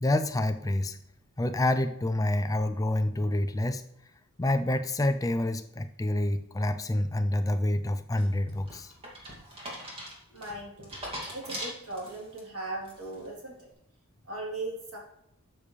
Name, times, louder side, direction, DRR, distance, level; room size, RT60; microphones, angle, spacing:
voice 1, 0.0-1.0 1.4-3.8 4.4-8.9, left 1 dB, 15° left, 9 dB, 0.4 m, -27 dB
sound 1, 8.2-12.4 12.8-13.3, equal, 25° right, 2.4 m, -41 dB
voice 2, 10.3-11.0 11.3-13.7 14.3-15.0, right 2 dB, 80° right, -2 dB, 3.4 m, -38 dB
12.5 x 6.7 x 3.3 m, 0.78 s
head